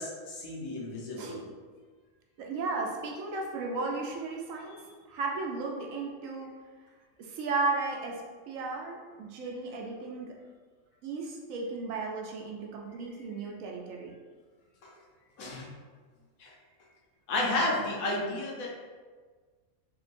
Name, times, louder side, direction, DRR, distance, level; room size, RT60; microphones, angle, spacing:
voice 1, 0.0-1.4 14.8-14.9 15.4-15.6 16.4-16.5 17.3-18.7, left 2 dB, 85° left, -4 dB, 1.3 m, -32 dB
voice 2, 1.2-1.5 2.4-4.8 5.1-6.5 7.2-10.4 11.0-14.1, right 3 dB, 75° right, 0 dB, 1.0 m, -35 dB
3.7 x 2.7 x 2.5 m, 1.5 s
omnidirectional pair, 1.4 m